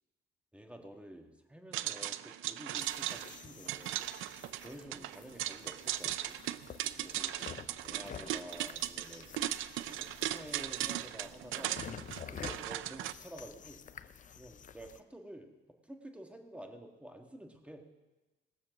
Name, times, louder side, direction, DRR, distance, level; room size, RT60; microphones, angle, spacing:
voice 1, 0.5-4.0 4.5-6.4 6.9-9.4 9.8-11.7 12.3-13.8 14.4-15.5 15.8-17.8, right 1 dB, 5° right, 4 dB, 1.6 m, -50 dB
sound 1, 1.7-13.1, right 14 dB, 90° right, 0.5 m, -38 dB
sound 2, 2.8-15.0, left 8 dB, 40° left, 0.6 m, -50 dB
18.5 x 7.2 x 6.0 m, 1.1 s
cardioid pair, 90°, 20 cm